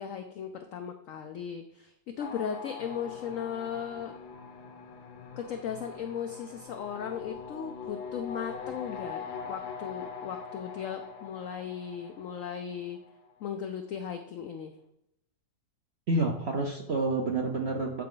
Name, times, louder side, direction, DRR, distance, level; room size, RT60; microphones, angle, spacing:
voice 1, 0.0-4.1 5.4-13.0 13.4-14.7, left 8 dB, 80° left, 6 dB, 0.7 m, -37 dB
sound 1, 2.2-13.3, left 6 dB, 65° left, 1.2 m, -43 dB
voice 2, 16.1-18.0, right 2 dB, 65° right, 2 dB, 0.6 m, -29 dB
8.9 x 4.7 x 3.8 m, 0.76 s
omnidirectional pair, 2.0 m